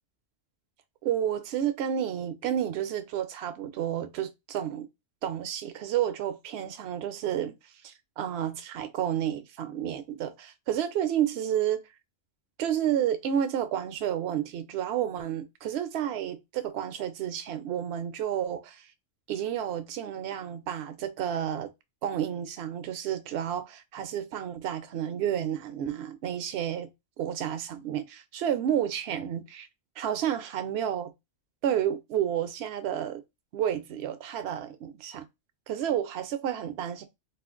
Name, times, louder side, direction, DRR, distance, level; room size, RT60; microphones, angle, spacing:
voice 1, 1.0-4.9 5.2-7.5 7.8-11.8 12.6-18.9 19.3-21.7 22.0-26.9 27.2-29.7 30.0-31.1 31.6-33.2 33.5-35.3 35.7-37.0, right 10 dB, 65° right, 0.8 m, -30 dB
2.5 x 2.4 x 3.7 m
omnidirectional pair, 1.3 m